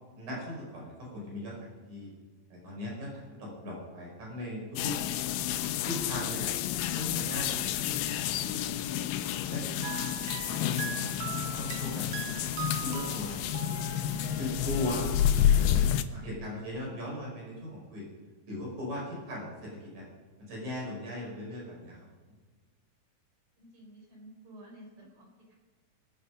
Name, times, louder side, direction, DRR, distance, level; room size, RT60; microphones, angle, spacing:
voice 1, 0.2-2.1 2.5-4.9 5.6-6.5 6.9-8.9 9.5-13.7 14.4-15.1 15.5-18.0 18.5-20.1 20.5-22.0, left 1 dB, 55° right, -4 dB, 6.4 m, -39 dB
sound 1, 4.8-16.0, left 10 dB, 85° left, 2.6 m, -30 dB
sound 2, 9.8-15.0, right 10 dB, 80° right, 2.4 m, -41 dB
voice 2, 23.6-25.5, right 1 dB, 35° right, -2 dB, 5.0 m, -52 dB
23.5 x 8.7 x 5.3 m, 1.4 s
omnidirectional pair, 4.2 m